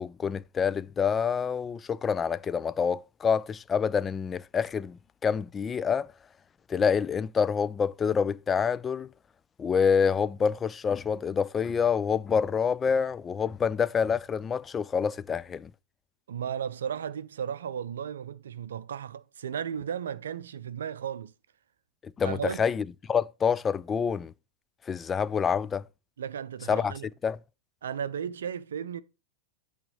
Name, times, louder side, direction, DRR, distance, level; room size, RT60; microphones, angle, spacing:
voice 1, 0.0-6.1 6.7-9.1 9.6-15.7 22.2-24.3 24.9-25.8 26.7-26.9 27.2-27.4, left 6 dB, 20° left, 0.3 m, -27 dB
voice 2, 16.3-21.3 22.2-22.6 26.2-27.1 27.8-29.0, right 8 dB, 65° right, 0.5 m, -35 dB
8.9 x 3.6 x 6.2 m
figure-of-eight pair, 90°, 0 cm